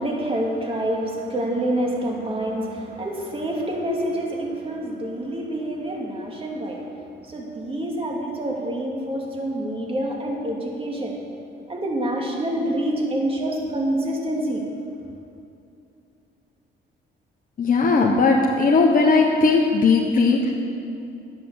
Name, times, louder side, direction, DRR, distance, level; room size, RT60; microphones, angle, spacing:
voice 1, 0.0-6.9 7.2-11.1 11.7-14.7, right 1 dB, 30° right, -1 dB, 2.6 m, -27 dB
voice 2, 17.6-20.5, left 4 dB, 45° left, -1 dB, 1.2 m, -18 dB
11.5 x 9.4 x 7.0 m, 2.6 s
cardioid pair, 90°, 20 cm